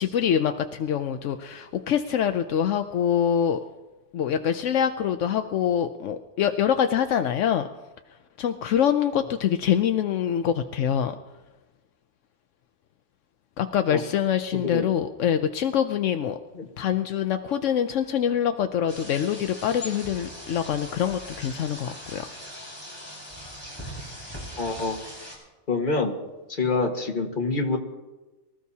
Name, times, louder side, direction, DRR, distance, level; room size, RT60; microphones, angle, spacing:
voice 1, 0.0-3.6 4.1-7.7 8.4-11.2 13.6-16.4 16.8-22.2, left 9 dB, 80° left, 7 dB, 1.0 m, -25 dB
sound 1, 18.9-25.4, equal, 10° left, 5.3 m, -40 dB
voice 2, 24.6-25.0 25.7-26.1 26.5-27.8, left 3 dB, 40° left, 2 dB, 1.6 m, -26 dB
24.0 x 14.0 x 2.8 m, 1.1 s
omnidirectional pair, 1.3 m